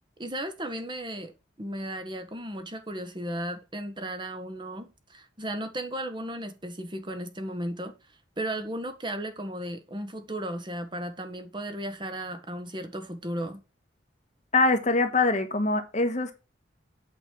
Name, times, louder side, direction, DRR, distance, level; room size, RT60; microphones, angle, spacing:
voice 1, 0.2-1.3 1.6-7.9 8.4-13.6, right 1 dB, 25° right, 1.3 m, -35 dB
voice 2, 14.5-16.3, left 3 dB, 40° left, 1.5 m, -23 dB
8.5 x 5.5 x 7.4 m
head